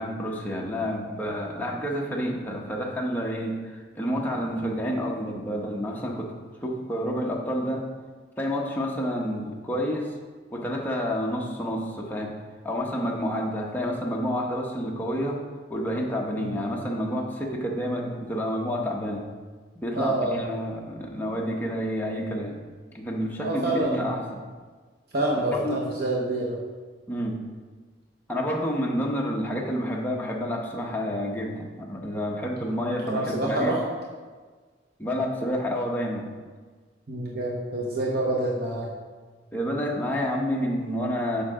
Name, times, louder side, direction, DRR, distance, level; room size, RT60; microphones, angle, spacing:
voice 1, 0.0-6.3 6.6-7.9 8.4-10.1 10.5-12.4 12.6-15.4 15.7-19.3 19.8-22.6 22.9-24.4 25.5-25.8 27.1-27.4 28.3-33.8 35.0-36.3 39.5-41.4, equal, 10° left, -2 dB, 1.0 m, -29 dB
voice 2, 19.9-20.4 23.4-24.1 25.1-26.6 33.1-33.8 37.1-38.9, right 2 dB, 60° right, -3 dB, 1.0 m, -27 dB
8.1 x 5.8 x 3.7 m, 1.4 s
head